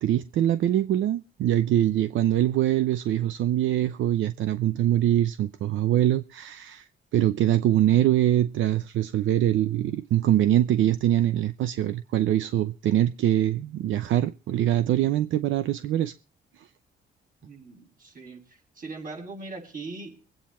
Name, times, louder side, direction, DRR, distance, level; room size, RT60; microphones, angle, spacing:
voice 1, 0.0-6.8 7.1-16.1, right 12 dB, 75° right, 0.7 m, -23 dB
voice 2, 17.4-18.4 18.8-20.1, right 3 dB, 45° right, 7.2 m, -40 dB
23.0 x 9.0 x 4.3 m
cardioid pair, 90°, 20 cm